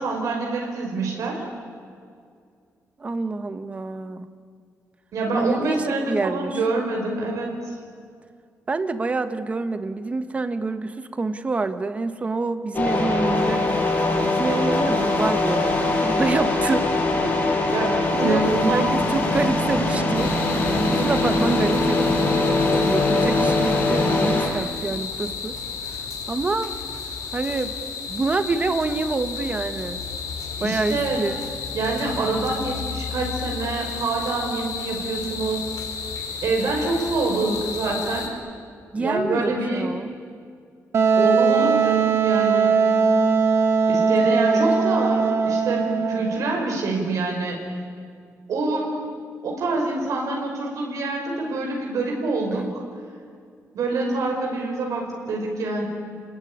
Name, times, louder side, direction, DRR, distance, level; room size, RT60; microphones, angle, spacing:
voice 1, 0.0-1.4 5.1-7.8 17.7-18.9 30.6-31.2 31.7-35.8 36.4-38.3 38.9-39.9 41.2-42.7 43.9-47.6 48.5-49.0 49.4-52.8 53.7-55.9, right 3 dB, 75° right, 0 dB, 5.3 m, -26 dB
voice 2, 3.0-4.3 5.3-6.6 8.7-13.7 14.4-17.4 17.7-17.8 18.1-20.3 20.7-25.6 26.3-26.7 27.3-27.8 28.1-30.0 30.6-31.4 38.9-40.1 44.3-44.4 52.5-52.7, right 3 dB, 25° right, 10 dB, 1.2 m, -27 dB
sound 1, 12.7-24.5, left 2 dB, 35° left, 5.9 m, -22 dB
sound 2, 20.1-38.3, left 5 dB, 90° left, 4.8 m, -33 dB
Wind instrument woodwind instrument, 40.9-46.5, right 5 dB, 50° right, 1.6 m, -19 dB
30.0 x 20.0 x 10.0 m, 2.2 s
wide cardioid pair, 175°, 6 cm